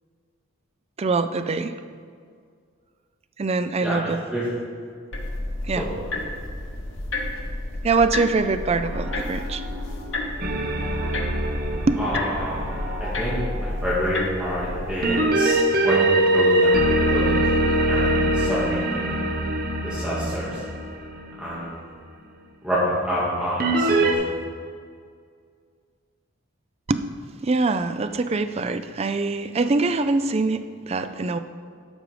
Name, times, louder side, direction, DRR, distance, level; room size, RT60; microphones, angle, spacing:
voice 1, 1.0-1.7 3.4-4.2 5.6-5.9 7.8-9.6 11.9-12.0 26.9-27.1 27.4-31.4, right 3 dB, 30° right, 10 dB, 0.4 m, -23 dB
sound 1, 5.1-15.0, left 2 dB, 65° left, 1.2 m, -31 dB
voice 2, 5.8-6.1 12.0-12.6 13.0-17.3 17.9-19.2 19.8-20.6 21.4-21.8 22.6-24.3, equal, 5° right, -9 dB, 1.8 m, -28 dB
Piano, 8.8-15.2, right 1 dB, 75° right, 1.3 m, -39 dB
sound 2, 10.4-13.1 15.0-21.5 23.6-24.1, right 1 dB, 50° right, 0.9 m, -22 dB
12.5 x 5.2 x 5.0 m, 2.1 s
head